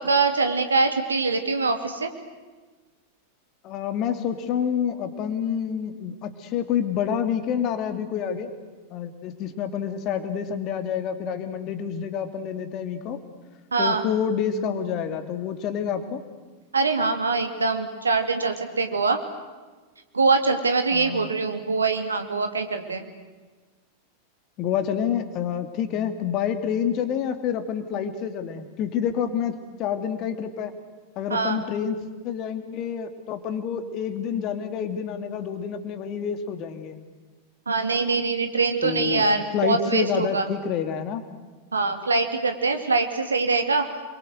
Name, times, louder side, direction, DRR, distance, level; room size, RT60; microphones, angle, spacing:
voice 1, 0.0-2.1 13.7-14.0 16.7-19.2 20.1-23.0 31.3-31.6 37.7-40.5 41.7-43.9, right 4 dB, 75° right, 7 dB, 2.5 m, -23 dB
voice 2, 3.6-8.5 8.9-13.2 13.8-16.2 20.9-21.3 24.6-30.7 31.2-37.0 38.8-39.3 39.5-41.2, left 8 dB, 40° left, 9 dB, 2.7 m, -28 dB
29.0 x 23.5 x 8.1 m, 1.3 s
figure-of-eight pair, 90°, 0 cm